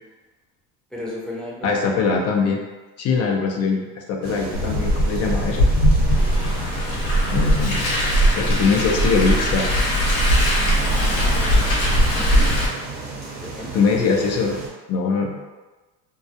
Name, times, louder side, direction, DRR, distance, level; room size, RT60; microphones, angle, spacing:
voice 1, 0.9-2.2 12.1-12.5 13.2-13.7, left 1 dB, ahead, -6 dB, 0.7 m, -35 dB
voice 2, 1.6-2.6 3.0-5.6 6.4-6.6 7.3-7.9 8.3-9.7 13.7-14.6 14.9-15.4, left 4 dB, 50° left, 1 dB, 0.5 m, -22 dB
sound 1, 4.2-14.7, right 3 dB, 50° right, 0.8 m, -35 dB
Car, 4.5-12.7, equal, 65° left, 1.0 m, -19 dB
2.3 x 2.0 x 2.8 m, 1.2 s
supercardioid pair, 90°, 33 cm